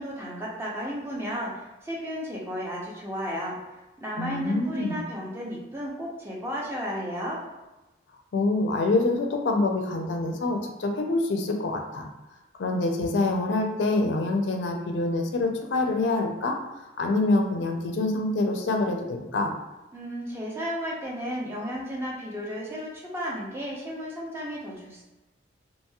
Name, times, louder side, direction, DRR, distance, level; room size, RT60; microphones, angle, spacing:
voice 1, 0.0-3.6 4.0-7.4 19.9-25.0, equal, 15° right, -4 dB, 0.5 m, -33 dB
voice 2, 4.2-5.0 8.3-12.1 12.6-16.5 17.0-19.5, left 2 dB, 85° left, 3 dB, 0.4 m, -26 dB
2.9 x 2.7 x 2.3 m, 1.0 s
head